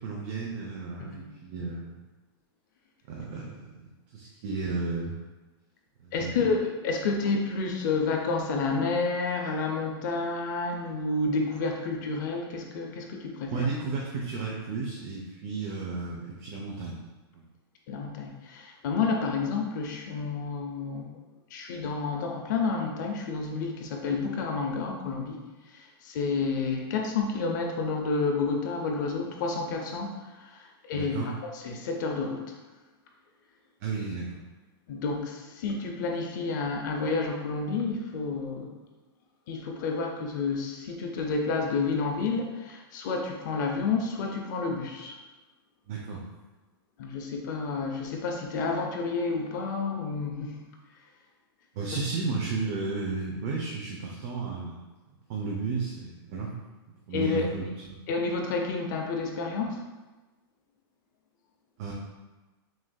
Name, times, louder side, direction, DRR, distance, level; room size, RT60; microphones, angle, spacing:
voice 1, 0.0-2.0 3.1-5.1 6.0-6.4 13.5-17.0 17.3-17.5 30.9-31.3 33.8-34.4 45.9-46.2 51.7-54.8 55.3-56.5 57.1-57.7 61.8-61.9, right 4 dB, 35° right, -2 dB, 0.5 m, -33 dB
voice 2, 6.1-13.7 17.9-21.2 21.5-32.6 34.9-38.7 39.5-45.1 47.0-50.6 57.1-57.5 58.1-59.8, left 4 dB, 50° left, 2 dB, 0.5 m, -30 dB
6.1 x 2.6 x 2.2 m, 1.2 s
supercardioid pair, 165°, 13 cm